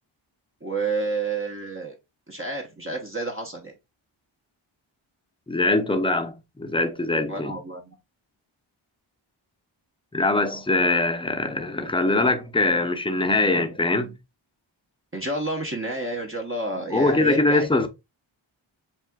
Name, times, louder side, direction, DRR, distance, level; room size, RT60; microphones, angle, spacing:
voice 1, 0.6-2.0 2.3-3.7 7.3-8.0 13.5-13.7 15.1-17.9, right 2 dB, 25° right, 0.8 m, -30 dB
voice 2, 5.5-7.5 10.1-14.1 16.9-17.9, left 2 dB, 10° left, 0.7 m, -22 dB
7.3 x 2.5 x 2.3 m
wide cardioid pair, 65°, 50 cm